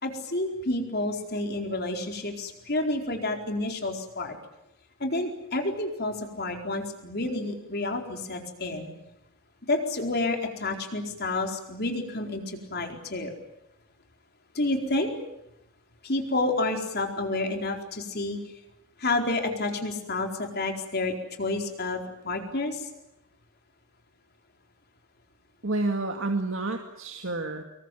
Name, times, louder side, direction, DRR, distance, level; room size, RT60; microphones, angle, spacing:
voice 1, 0.0-4.4 5.0-8.9 9.7-13.3 14.5-15.1 16.0-18.4 19.0-22.9, left 2 dB, 50° left, 3 dB, 4.4 m, -29 dB
voice 2, 25.6-27.6, right 2 dB, 65° right, 4 dB, 2.3 m, -29 dB
26.0 x 22.5 x 9.3 m, 0.89 s
head